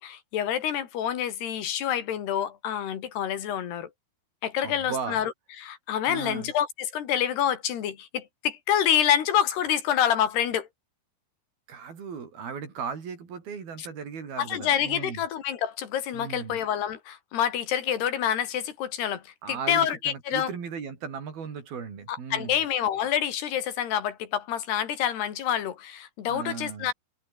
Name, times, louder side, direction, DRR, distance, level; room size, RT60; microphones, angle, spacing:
voice 1, 0.0-3.9 4.4-5.3 5.6-10.7 13.8-13.9 14.4-20.5 22.1-26.9, left 10 dB, 80° left, 4.5 m, -27 dB
voice 2, 4.6-5.2 6.1-6.5 11.7-15.2 16.1-16.6 19.4-22.6 26.3-26.9, right 6 dB, 65° right, 6.1 m, -36 dB
omnidirectional pair, 4.6 m